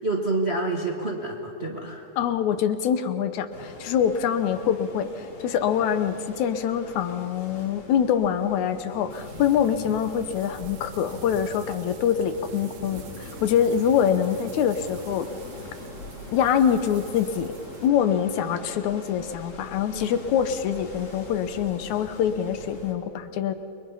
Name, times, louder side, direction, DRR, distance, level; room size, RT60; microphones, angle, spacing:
voice 1, 0.0-2.0 19.9-20.0, right 2 dB, 40° right, 0 dB, 0.9 m, -28 dB
voice 2, 2.2-15.3 16.3-17.5 17.8-23.5, left 8 dB, 80° left, 10 dB, 2.3 m, -24 dB
sound 1, 3.5-22.9, left 1 dB, 50° left, 3.9 m, -43 dB
sound 2, 9.1-17.9, right 7 dB, 75° right, 2.8 m, -48 dB
29.0 x 22.0 x 5.6 m, 2.9 s
omnidirectional pair, 3.4 m